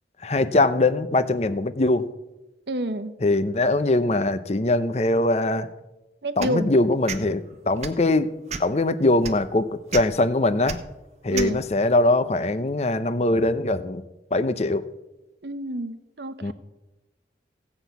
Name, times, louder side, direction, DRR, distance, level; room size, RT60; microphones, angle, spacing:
voice 1, 0.2-2.1 3.2-5.7 6.4-8.3 8.6-10.8 11.2-14.0 14.3-14.9 16.4-16.5, left 2 dB, 35° left, 12 dB, 0.6 m, -22 dB
voice 2, 2.7-3.1 6.2-6.7 11.3-11.6 15.4-16.5, right 1 dB, 65° right, 12 dB, 0.9 m, -29 dB
sound 1, 6.4-6.6 7.1-7.2 7.8-8.0 8.5-8.8 9.2-9.4 9.9-10.0 10.7-10.8 11.3-11.5, right 6 dB, 35° right, 0.9 m, -31 dB
16.5 x 6.0 x 8.2 m, 1.0 s
head